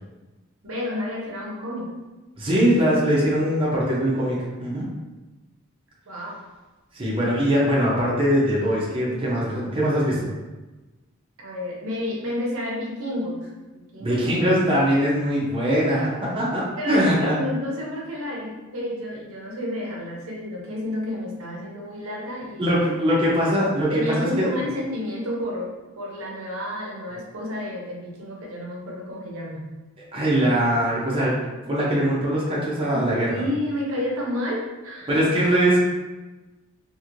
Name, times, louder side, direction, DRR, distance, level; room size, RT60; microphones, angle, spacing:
voice 1, 0.6-1.9 6.1-6.4 11.4-13.5 13.9-14.2 16.8-22.7 23.1-23.2 23.9-25.7 26.0-29.6 32.9-33.0 33.3-35.1, left 1 dB, 70° right, -3 dB, 0.7 m, -30 dB
voice 2, 2.4-4.9 6.9-10.3 14.0-17.4 22.6-24.5 30.1-33.3 35.1-35.8, equal, 25° right, -6 dB, 0.6 m, -22 dB
3.0 x 2.6 x 2.5 m, 1.1 s
head